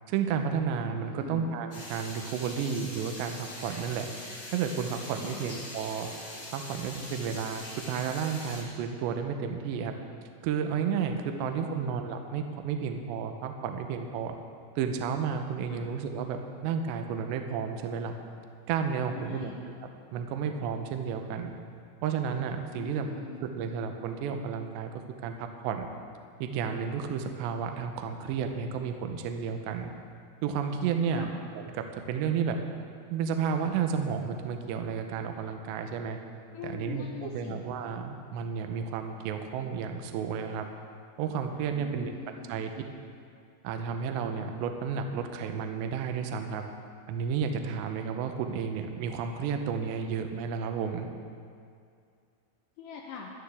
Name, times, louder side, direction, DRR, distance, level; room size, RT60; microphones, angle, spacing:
voice 1, 0.1-4.1 4.5-6.1 6.5-9.9 10.4-14.4 14.8-18.1 18.7-19.5 20.1-21.5 22.0-23.1 23.4-24.9 25.2-25.9 26.4-29.9 30.4-31.3 31.7-32.6 33.1-36.2 36.6-40.7 41.2-42.2 42.5-42.7 43.6-46.6 47.1-51.1, right 6 dB, 80° right, 5 dB, 2.6 m, -32 dB
voice 2, 1.0-1.5 5.2-5.5 11.3-11.9 15.7-15.9 19.1-19.6 22.7-23.4 31.1-31.4 36.5-37.6 41.7-42.5 52.8-53.3, left 6 dB, 85° left, -1 dB, 2.5 m, -42 dB
sound 1, 1.7-8.6, left 1 dB, 65° left, 0.7 m, -43 dB
17.0 x 11.5 x 3.6 m, 2.3 s
omnidirectional pair, 5.8 m